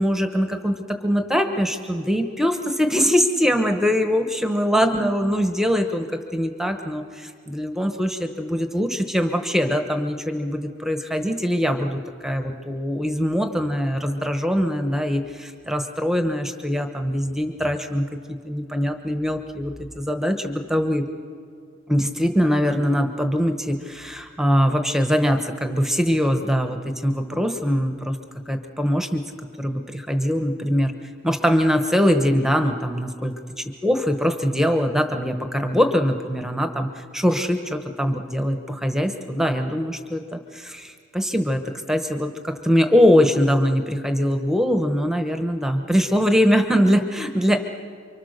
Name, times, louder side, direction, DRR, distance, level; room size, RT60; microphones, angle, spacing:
voice 1, 0.0-21.0 21.9-28.2 28.5-29.2 29.6-30.9 31.2-33.3 33.8-47.6, equal, ahead, 6 dB, 1.1 m, -22 dB
29.0 x 24.5 x 6.7 m, 2.2 s
head